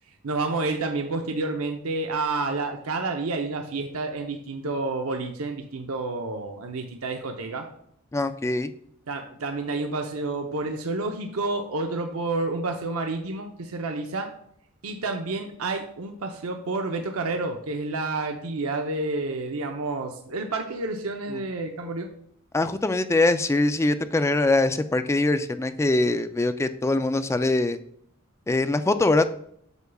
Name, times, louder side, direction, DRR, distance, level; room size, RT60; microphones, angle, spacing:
voice 1, 0.2-7.7 9.1-14.3 14.8-22.1, right 3 dB, 75° right, 4 dB, 0.7 m, -29 dB
voice 2, 8.1-8.7 22.5-27.8 28.5-29.3, left 2 dB, 15° left, 11 dB, 0.3 m, -23 dB
8.1 x 6.9 x 2.3 m, 0.69 s
head